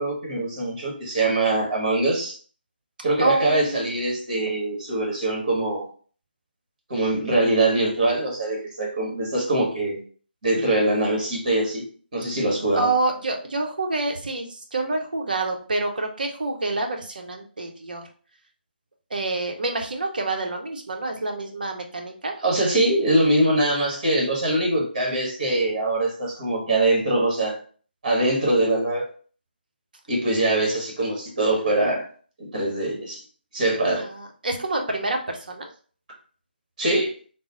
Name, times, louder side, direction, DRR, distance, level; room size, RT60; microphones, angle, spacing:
voice 1, 0.0-2.4 3.0-5.9 6.9-10.0 10.4-11.8 12.1-12.9 22.4-27.6 28.0-29.1 30.1-32.1 32.4-33.2 33.5-34.1 36.8-37.1, right 2 dB, 40° right, -1 dB, 1.3 m, -23 dB
voice 2, 3.2-3.9 12.7-18.0 19.1-22.3 34.0-35.7, right 2 dB, 55° right, 3 dB, 0.7 m, -27 dB
3.7 x 2.0 x 2.8 m, 0.43 s
figure-of-eight pair, 145°, 6 cm